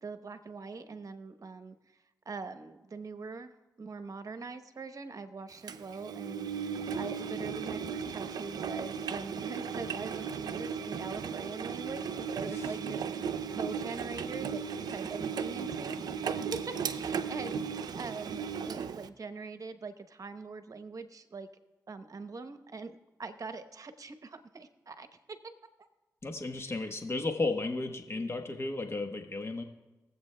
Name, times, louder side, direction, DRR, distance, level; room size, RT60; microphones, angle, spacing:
voice 1, 0.0-1.7 2.3-6.5 6.9-21.5 21.9-25.4 26.6-26.9, right 4 dB, 55° right, 10 dB, 0.9 m, -43 dB
Engine, 5.7-19.1, right 6 dB, 75° right, 0.5 m, -36 dB
voice 2, 26.2-29.6, left 3 dB, 40° left, 5 dB, 1.1 m, -34 dB
23.0 x 8.0 x 2.2 m, 1.1 s
supercardioid pair, 40°, 7 cm